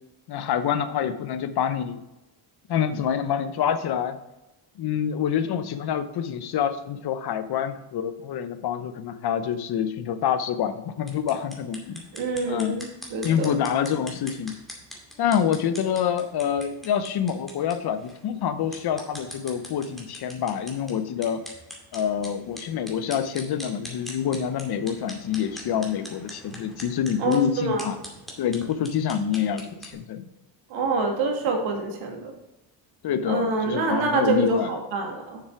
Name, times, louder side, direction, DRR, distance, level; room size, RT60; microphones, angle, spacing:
voice 1, 0.3-2.0 2.7-4.2 4.8-12.1 12.5-12.8 13.2-14.5 15.2-21.4 21.9-28.0 28.4-30.3 33.0-34.7, left 8 dB, 55° left, 11 dB, 0.9 m, -26 dB
sound 1, 11.0-29.9, equal, ahead, 2.2 m, -43 dB
voice 2, 12.1-13.5 27.2-27.9 30.7-32.3 33.2-35.4, right 3 dB, 90° right, 2 dB, 2.2 m, -26 dB
7.0 x 6.8 x 4.7 m, 0.98 s
cardioid pair, 120°, 46 cm